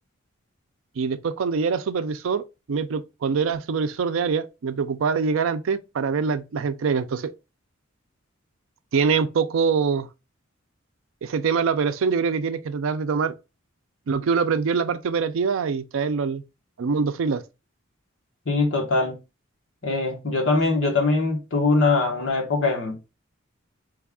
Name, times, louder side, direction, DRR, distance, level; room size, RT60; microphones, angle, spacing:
voice 1, 1.0-7.3 8.9-10.1 11.2-13.3 14.1-16.4 16.8-17.4, right 5 dB, 80° right, 0.4 m, -24 dB
voice 2, 18.5-19.2 19.8-23.0, left 3 dB, 65° left, 1.2 m, -22 dB
3.3 x 2.3 x 3.5 m
head